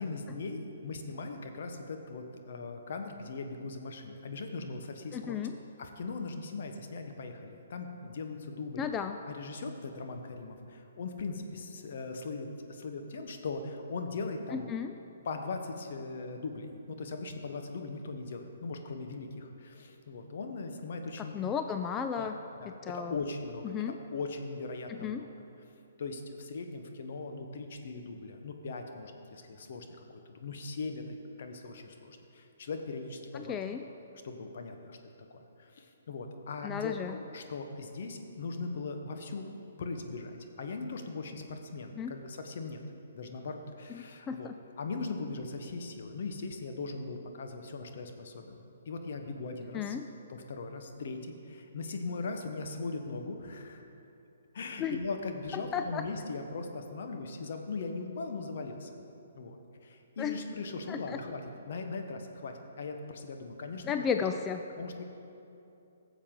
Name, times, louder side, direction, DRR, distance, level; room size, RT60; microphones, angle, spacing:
voice 1, 0.0-5.5 5.8-8.9 9.3-14.7 15.2-21.4 22.2-25.3 26.0-29.8 30.3-33.6 33.9-35.0 35.3-39.5 39.8-42.8 43.1-44.5 44.8-50.0 50.3-53.9 54.5-59.0 59.3-64.1 64.8-65.0, left 3 dB, 60° left, 5 dB, 1.0 m, -39 dB
voice 2, 5.1-5.5 8.8-9.2 14.5-14.9 21.2-22.3 22.8-23.2 23.6-24.0 25.0-25.2 33.3-33.8 36.6-37.2 42.0-42.1 44.3-44.5 49.7-50.0 54.8-55.0 55.7-56.0 60.2-60.4 60.9-61.0 63.8-64.6, left 7 dB, 20° left, 6 dB, 0.3 m, -33 dB
14.5 x 7.2 x 3.8 m, 2.8 s
hypercardioid pair, 145°, 0 cm